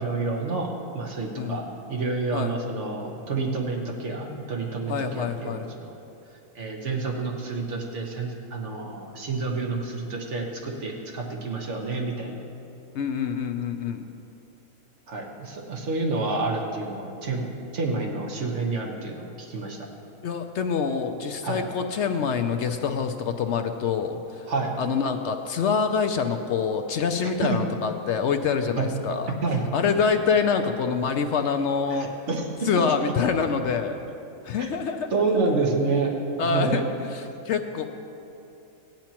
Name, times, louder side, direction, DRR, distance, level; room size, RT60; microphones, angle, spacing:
voice 1, 0.0-5.9 6.5-12.3 15.1-17.5 17.7-19.9 21.4-21.6 24.5-24.7 27.2-27.6 28.8-28.9 29.4-29.6 31.9-32.5 34.6-34.7 35.1-36.2 36.5-36.9, right 3 dB, 55° right, -1 dB, 1.6 m, -28 dB
voice 2, 4.9-5.7 12.9-14.0 20.2-24.4 24.8-29.3 29.7-32.1 32.6-34.0 34.4-35.1 36.4-37.9, left 6 dB, 65° left, 6 dB, 0.8 m, -26 dB
16.5 x 10.5 x 2.9 m, 2.8 s
omnidirectional pair, 1.5 m